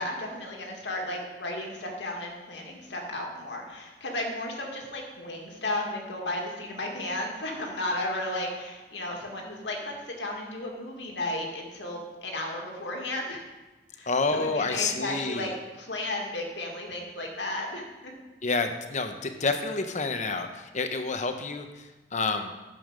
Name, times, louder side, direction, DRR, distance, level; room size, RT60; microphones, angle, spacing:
voice 1, 0.0-13.4 13.9-15.5 15.8-18.1, left 1 dB, 85° left, 0 dB, 2.1 m, -34 dB
voice 2, 14.1-15.5 18.4-22.5, left 3 dB, 45° left, 7 dB, 0.9 m, -29 dB
11.5 x 7.2 x 5.1 m, 1.1 s
head